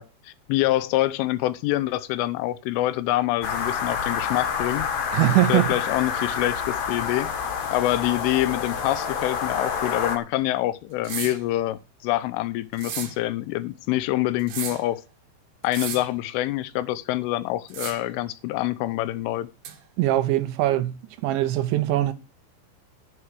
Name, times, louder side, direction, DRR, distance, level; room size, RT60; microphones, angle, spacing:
voice 1, 0.0-4.9 5.5-7.3 7.7-15.0 15.6-19.5, left 16 dB, 85° left, 3.3 m, -26 dB
sound 1, 3.4-10.2, left 6 dB, 55° left, 2.9 m, -28 dB
voice 2, 5.1-5.7 20.0-22.1, right 14 dB, 75° right, 3.1 m, -22 dB
sound 2, 11.0-11.4 12.7-13.2 14.4-14.9 15.6-16.1 17.7-18.1 19.6-19.8, right 8 dB, 60° right, 2.9 m, -34 dB
11.0 x 9.9 x 4.8 m
omnidirectional pair, 5.6 m